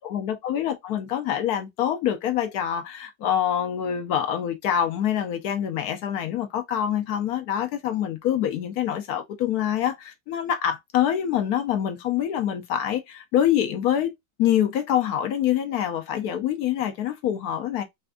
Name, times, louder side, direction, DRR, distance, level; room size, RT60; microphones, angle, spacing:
voice 1, 0.0-14.1 14.4-17.8, left 10 dB, 70° left, 1.0 m, -25 dB
4.2 x 2.5 x 2.2 m
omnidirectional pair, 1.8 m